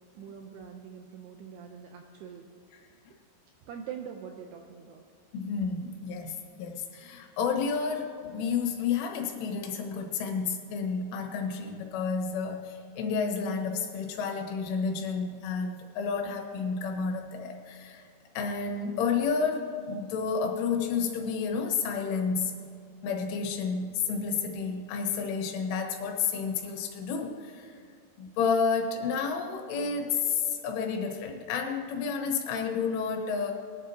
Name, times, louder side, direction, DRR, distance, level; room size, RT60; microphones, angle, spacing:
voice 1, 0.2-2.4 3.7-5.0, right 7 dB, 80° right, 3 dB, 2.4 m, -43 dB
voice 2, 5.3-18.1 18.4-22.6 23.0-27.7 28.2-33.5, left 5 dB, 90° left, 2 dB, 3.8 m, -30 dB
20.5 x 12.0 x 2.9 m, 2.3 s
omnidirectional pair, 5.5 m